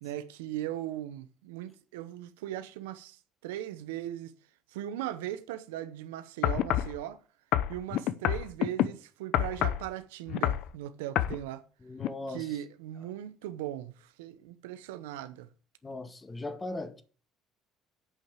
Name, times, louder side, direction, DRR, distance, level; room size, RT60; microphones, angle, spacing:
voice 1, 0.0-4.3 4.7-7.2 7.7-11.6 12.3-15.5, right 12 dB, 90° right, 0.7 m, -38 dB
sound 1, 6.4-6.9 7.5-8.9 9.3-9.9 10.3-10.7 11.2-11.4 12.0-12.1, left 12 dB, 70° left, 0.7 m, -27 dB
voice 2, 11.8-12.5 15.8-17.0, left 2 dB, 25° left, 1.7 m, -38 dB
8.4 x 5.8 x 7.5 m
supercardioid pair, 70°, 0 cm